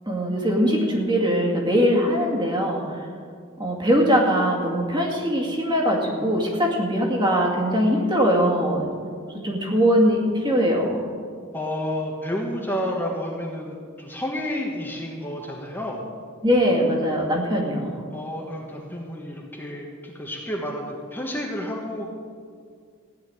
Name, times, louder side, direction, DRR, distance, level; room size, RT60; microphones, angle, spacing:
voice 1, 0.1-3.0 3.6-8.9 9.3-11.1 16.4-18.0, equal, 20° right, -1 dB, 2.3 m, -21 dB
voice 2, 11.5-16.0 18.1-22.1, left 1 dB, 10° left, -3 dB, 1.4 m, -30 dB
16.0 x 5.7 x 9.8 m, 2.2 s
head